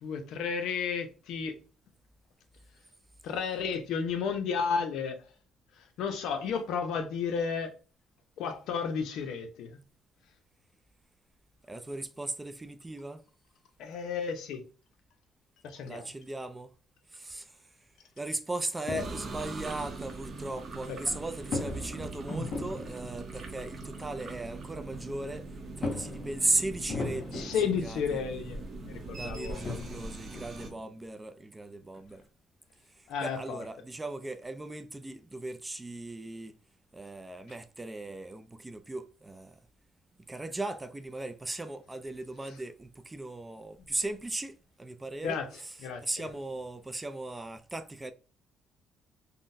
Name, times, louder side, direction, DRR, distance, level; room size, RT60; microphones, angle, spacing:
voice 1, 0.0-1.6 3.2-5.2 5.8-7.7 8.4-9.7 13.8-14.6 15.6-16.1 20.9-21.2 27.3-29.6 33.1-33.6 45.2-46.3, left 6 dB, 75° left, 0.6 m, -33 dB
voice 2, 11.7-13.2 15.8-16.7 17.1-17.7 18.2-25.5 25.8-27.5 27.8-28.2 29.1-32.2 32.9-36.5 36.9-39.6 40.3-45.4 46.0-48.1, right 2 dB, 15° right, 0.3 m, -37 dB
sound 1, 18.8-19.6 21.4-23.3 24.5-24.6 24.9-25.0 25.8-28.1 29.0-29.1 29.5-31.0, left 3 dB, 45° left, 0.8 m, -38 dB
sound 2, 19.0-30.7, right 3 dB, 40° right, 0.7 m, -42 dB
3.7 x 2.1 x 2.5 m
cardioid pair, 115°, 0 cm